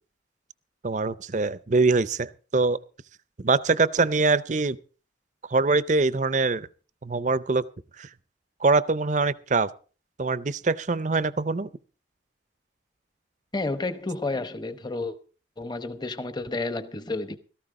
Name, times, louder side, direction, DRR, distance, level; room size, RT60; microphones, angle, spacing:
voice 1, 0.8-2.8 3.4-4.8 5.5-6.7 7.0-7.6 8.0-8.1 8.6-9.7 10.2-11.7, right 3 dB, 40° right, 0.5 m, -23 dB
voice 2, 13.5-15.2 15.6-17.4, left 2 dB, 20° left, 0.9 m, -31 dB
16.0 x 14.0 x 3.7 m
head